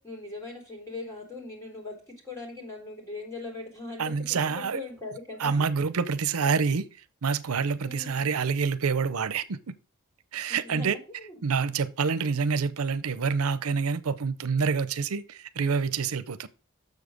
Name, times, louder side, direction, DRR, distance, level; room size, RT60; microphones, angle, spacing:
voice 1, 0.0-5.7 7.8-8.2 10.5-11.4, left 3 dB, 15° left, 3.5 m, -40 dB
voice 2, 4.0-4.8 5.4-6.9 7.2-9.7 10.3-11.0 11.4-16.5, right 5 dB, 85° right, 0.6 m, -27 dB
7.3 x 6.7 x 5.1 m
head